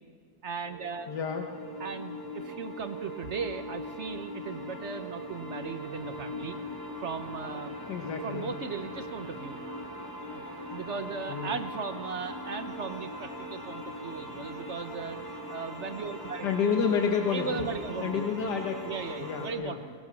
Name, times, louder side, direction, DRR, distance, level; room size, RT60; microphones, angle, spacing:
voice 1, 0.4-1.1 1.8-6.6 7.0-7.8 8.2-9.6 10.3-10.4 10.7-16.5 17.3-18.3 18.9-19.9, right 5 dB, 50° right, 9 dB, 1.0 m, -37 dB
sound 1, 0.6-19.5, equal, 10° left, 3.0 m, -40 dB
voice 2, 1.1-1.5 7.9-8.5 11.3-11.6 16.4-17.7 18.0-18.9 19.2-19.8, left 6 dB, 80° left, 4 dB, 1.8 m, -29 dB
23.0 x 20.0 x 6.2 m, 2.3 s
omnidirectional pair, 1.8 m